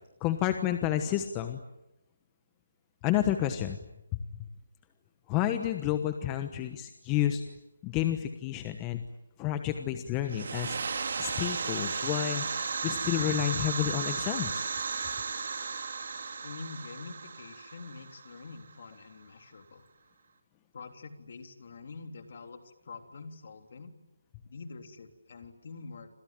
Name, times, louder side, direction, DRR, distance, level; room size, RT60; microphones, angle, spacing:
voice 1, 0.2-1.6 3.0-3.8 4.1-4.2 5.3-7.4 7.8-9.0 9.4-10.8 11.2-12.4 12.8-14.6, left 12 dB, 15° left, 8 dB, 1.2 m, -30 dB
sound 1, 10.2-18.8, right 5 dB, 50° right, 3.1 m, -35 dB
voice 2, 16.4-19.8 20.7-23.9 24.4-26.1, left 4 dB, 45° left, 6 dB, 3.5 m, -46 dB
29.0 x 26.5 x 7.6 m, 0.93 s
hypercardioid pair, 165°, 0 cm